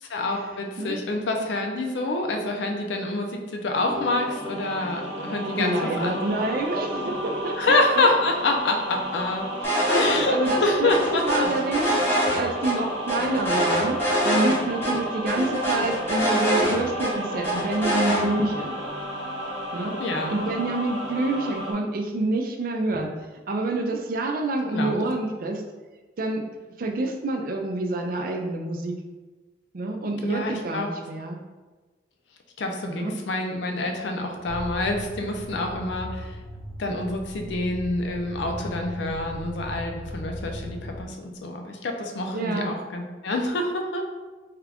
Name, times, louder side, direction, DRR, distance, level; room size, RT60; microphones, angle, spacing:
voice 1, 0.0-6.4 7.6-9.5 9.9-11.5 20.0-20.3 24.7-25.0 30.2-30.9 32.6-36.4 36.8-44.1, left 2 dB, 85° left, 3 dB, 0.5 m, -27 dB
sound 1, 3.7-21.7, equal, 70° right, 0.9 m, -33 dB
voice 2, 5.6-8.1 9.6-11.9 12.4-14.0 14.2-19.0 19.7-19.9 20.3-23.1 23.5-25.6 26.2-26.4 26.8-29.0 29.7-31.4 32.9-33.1 42.3-42.7, right 2 dB, 55° right, 3 dB, 0.4 m, -27 dB
sound 2, 9.6-10.2 10.4-10.6 10.9-12.7 13.1-14.6 14.8-14.9 15.3-17.1 17.4-18.2, equal, 15° left, 0.9 m, -24 dB
sound 3, 34.4-41.0, left 1 dB, 10° right, 1.1 m, -37 dB
3.6 x 2.4 x 3.4 m, 1.3 s
head